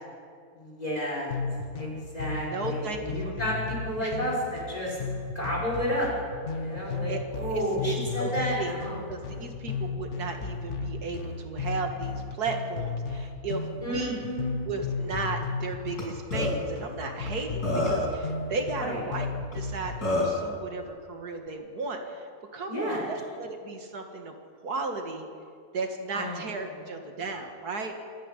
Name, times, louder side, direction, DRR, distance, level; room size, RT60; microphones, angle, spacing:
voice 1, 0.5-1.4 1.7-5.0 5.3-6.1 6.4-9.0 13.8-14.5 18.8-19.0 22.7-23.0 26.1-26.4, equal, 25° left, -4 dB, 5.9 m, -31 dB
sound 1, 1.3-20.1, left 4 dB, 50° left, 1.4 m, -35 dB
voice 2, 2.4-3.5 4.0-4.1 6.8-7.2 7.5-8.7 9.1-14.3 14.6-24.3 24.6-25.3 25.7-28.0, right 3 dB, 85° right, 4 dB, 2.4 m, -35 dB
Burping eructation, 16.0-16.1 16.3-16.5 17.3-17.4 17.6-18.1 19.5-19.6 20.0-20.4, left 2 dB, 90° left, 7.4 m, -26 dB
26.0 x 10.0 x 10.0 m, 2.2 s
omnidirectional pair, 1.6 m